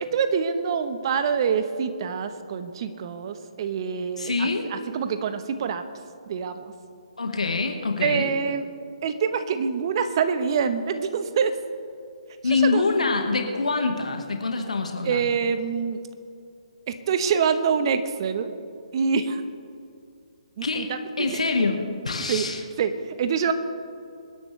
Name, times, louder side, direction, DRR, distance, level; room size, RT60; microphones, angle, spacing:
voice 1, 0.0-5.8 6.3-6.7 8.0-8.7 9.0-11.6 12.4-12.9 15.0-16.0 16.9-18.5 18.9-19.4 20.6-21.4 22.3-23.5, right 6 dB, 45° right, 9 dB, 1.1 m, -26 dB
voice 2, 4.2-4.7 7.2-8.3 12.4-15.3 20.6-20.9 21.2-22.6, left 4 dB, 80° left, 4 dB, 1.7 m, -25 dB
25.5 x 10.5 x 3.4 m, 2.4 s
figure-of-eight pair, 140°, 4 cm